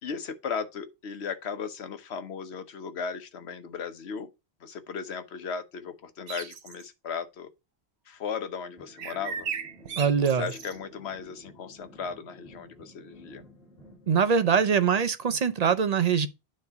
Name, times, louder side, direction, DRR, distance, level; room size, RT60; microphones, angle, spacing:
voice 1, 0.0-4.3 4.6-7.5 8.1-9.5 10.2-13.4, left 6 dB, 85° left, 1.1 m, -36 dB
sound 1, 6.3-6.9 9.0-10.8, right 7 dB, 85° right, 1.0 m, -36 dB
sound 2, 8.8-14.1, left 1 dB, 45° left, 3.5 m, -52 dB
voice 2, 10.0-10.5 14.1-16.3, right 6 dB, 45° right, 0.6 m, -23 dB
9.4 x 3.3 x 4.6 m
omnidirectional pair, 1.1 m